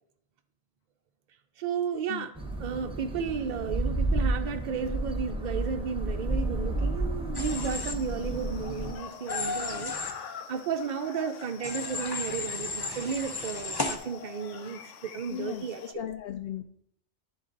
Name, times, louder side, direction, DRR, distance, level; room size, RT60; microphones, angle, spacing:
voice 1, 1.6-2.3 2.6-9.9 10.2-15.8, right 6 dB, 60° right, 0.5 m, -33 dB
sound 1, 2.3-8.9, right 2 dB, 5° right, 0.8 m, -31 dB
Human voice / Train, 7.3-7.9 9.3-10.1 11.6-14.0, left 3 dB, 25° left, 0.6 m, -34 dB
sound 2, 7.4-15.9, left 5 dB, 85° left, 1.0 m, -42 dB
voice 2, 15.3-15.7 15.9-16.6, left 11 dB, 65° left, 0.7 m, -36 dB
10.5 x 3.9 x 3.8 m
omnidirectional pair, 1.2 m